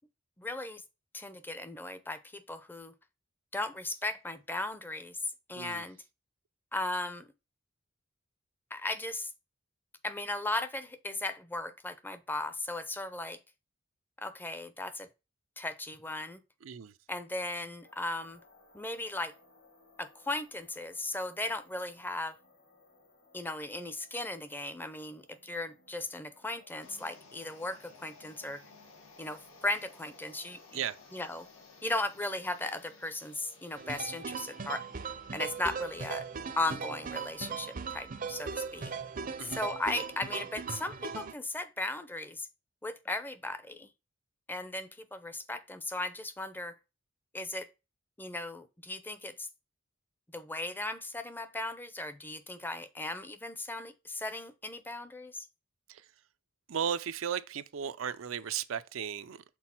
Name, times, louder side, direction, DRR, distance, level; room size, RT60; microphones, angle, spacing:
voice 1, 0.4-0.8 1.1-2.9 3.5-6.0 6.7-7.3 8.7-9.3 10.0-13.4 14.2-15.1 15.6-16.4 17.1-18.4 18.7-19.3 20.0-22.4 23.3-28.6 29.2-30.8 31.1-31.5 31.8-34.9 35.3-36.3 36.6-38.9 39.5-42.5 42.8-43.9 44.5-46.8 47.3-47.7 48.2-49.5 50.3-55.5, left 2 dB, 10° left, 0.5 m, -37 dB
voice 2, 5.5-5.9 16.6-17.0 30.7-31.0 39.4-39.6 55.9-56.1 56.7-59.4, right 8 dB, 90° right, 0.5 m, -35 dB
sound 1, 17.8-34.2, left 3 dB, 65° left, 2.1 m, -62 dB
sound 2, 26.8-36.8, left 3 dB, 90° left, 1.5 m, -58 dB
sound 3, 33.8-41.3, right 5 dB, 45° right, 0.5 m, -39 dB
6.2 x 3.9 x 4.4 m
head